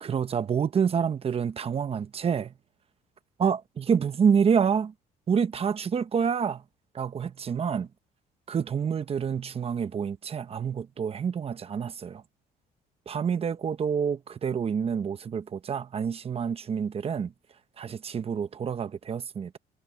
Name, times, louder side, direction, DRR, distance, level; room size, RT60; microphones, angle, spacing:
voice 1, 0.0-2.5 3.4-4.9 5.3-6.6 6.9-7.9 8.5-12.2 13.1-17.3 17.8-19.6, right 7 dB, 35° right, 1.0 m, -27 dB
cardioid pair, 110°, 17 cm